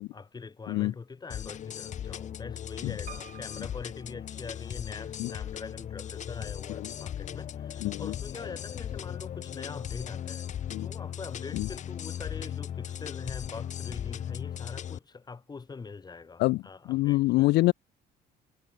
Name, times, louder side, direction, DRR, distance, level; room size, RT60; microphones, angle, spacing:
voice 1, 0.0-17.5, left 4 dB, 25° left, 2.5 m, -43 dB
sound 1, 1.3-15.0, left 9 dB, 45° left, 0.9 m, -38 dB
Piano, 3.1-5.0 5.7-6.4 6.7-6.8 7.0-7.1, right 10 dB, 55° right, 2.3 m, -51 dB
voice 2, 7.8-8.1 10.7-10.9 11.5-11.7 16.4-16.6 16.9-17.7, left 19 dB, 80° left, 0.5 m, -25 dB
cardioid pair, 110°, 17 cm